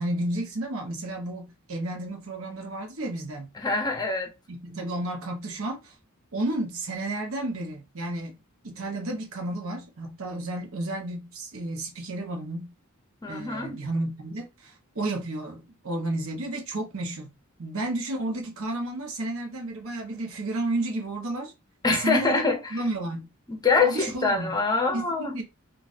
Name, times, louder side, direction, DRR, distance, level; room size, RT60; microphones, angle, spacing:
voice 1, 0.0-3.5 4.5-5.9 6.3-8.3 8.6-12.7 13.3-17.3 17.6-21.5 21.9-22.4 22.7-23.3 23.8-24.5 24.9-25.4, right 1 dB, 70° right, 0.8 m, -32 dB
voice 2, 3.6-4.3 13.2-13.8 21.8-22.8 23.5-25.4, left 4 dB, 20° left, 0.6 m, -25 dB
3.9 x 2.3 x 2.4 m
head